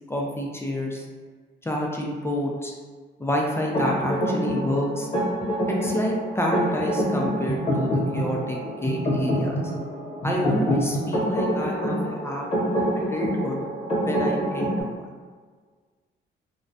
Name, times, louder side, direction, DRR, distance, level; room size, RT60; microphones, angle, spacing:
voice 1, 0.1-1.0 1.6-2.7 3.2-5.1 5.8-9.7 10.2-12.5 13.0-13.7 14.0-15.0, equal, 15° left, -1 dB, 0.4 m, -28 dB
sound 1, 3.7-14.8, equal, 35° left, 0.9 m, -26 dB
2.3 x 2.1 x 2.6 m, 1.5 s
cardioid pair, 90°, 20 cm